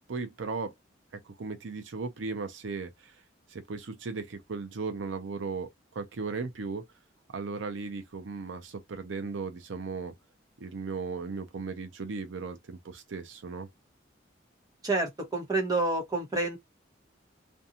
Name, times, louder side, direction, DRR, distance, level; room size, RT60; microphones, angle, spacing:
voice 1, 0.1-0.7 1.2-3.2 3.5-6.8 7.3-10.1 10.6-13.7, right 4 dB, 80° right, 0.5 m, -36 dB
voice 2, 14.8-16.6, right 2 dB, 20° right, 0.9 m, -28 dB
2.6 x 2.2 x 2.7 m
head